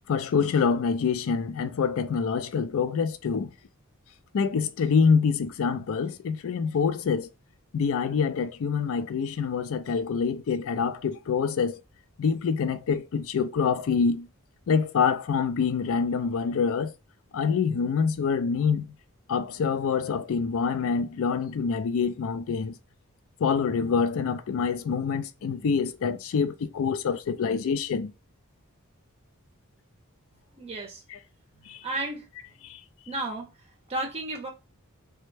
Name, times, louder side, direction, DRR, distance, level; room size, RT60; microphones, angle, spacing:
voice 1, 0.1-3.5 4.3-7.3 7.7-11.8 12.2-14.3 14.7-16.9 17.3-18.9 19.3-22.7 23.4-28.1 31.1-31.2 31.7-31.8 32.6-32.8, left 5 dB, 65° left, 0.4 m, -26 dB
voice 2, 30.6-31.0 31.5-32.3 33.1-34.5, right 2 dB, 30° right, 0.5 m, -34 dB
3.2 x 2.1 x 3.2 m
head